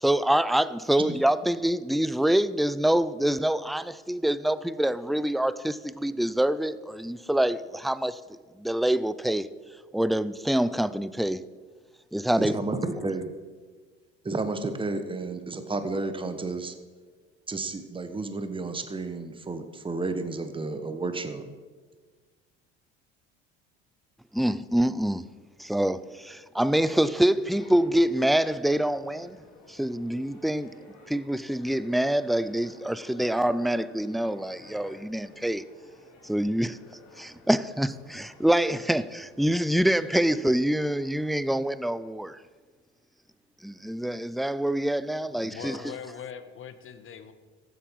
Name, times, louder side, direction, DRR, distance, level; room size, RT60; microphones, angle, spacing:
voice 1, 0.0-8.2 8.6-9.5 9.9-11.4 12.1-12.6 24.3-25.3 25.6-29.4 29.7-30.7 31.1-35.6 36.2-36.8 37.2-42.4 43.6-45.8, right 1 dB, ahead, 0.3 m, -25 dB
voice 2, 12.4-13.3 14.2-16.7 17.5-21.5, right 3 dB, 15° right, 1.2 m, -31 dB
sound 1, 27.5-41.3, left 3 dB, 60° left, 3.4 m, -52 dB
voice 3, 45.4-47.3, left 7 dB, 40° left, 1.2 m, -41 dB
15.0 x 8.1 x 4.7 m
hypercardioid pair, 75°, 31 cm